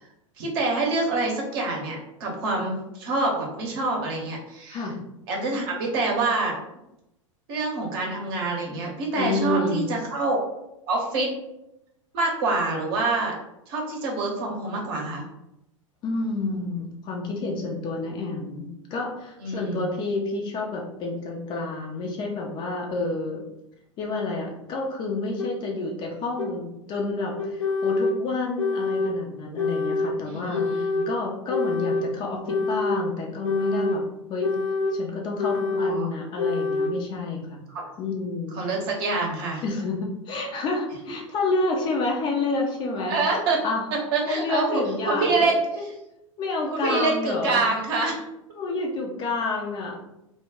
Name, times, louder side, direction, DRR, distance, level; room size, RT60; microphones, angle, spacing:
voice 1, 0.4-4.9 5.3-6.5 7.5-10.4 10.9-11.3 12.1-13.3 13.7-15.2 19.4-19.8 30.3-31.1 35.8-36.1 37.7-37.8 38.5-39.6 43.1-43.6 44.1-45.9 46.7-48.2, right 3 dB, 45° right, -1 dB, 0.8 m, -26 dB
voice 2, 9.2-9.9 16.0-23.4 24.0-34.0 34.3-34.5 34.9-37.6 38.0-38.6 39.6-43.2 43.6-43.8 44.3-45.8 46.4-47.6 48.5-49.9, left 3 dB, 30° left, 0 dB, 0.5 m, -29 dB
sound 1, 25.4-25.5 26.4-26.5 27.4-28.2 28.6-29.1 29.6-30.1 30.5-31.1 31.5-32.1 32.5-33.0 33.4-34.0 34.4-35.0 35.4-36.0 36.4-36.9, left 3 dB, 85° left, 0.5 m, -26 dB
2.2 x 2.1 x 3.5 m, 0.87 s
figure-of-eight pair, 90°, 17 cm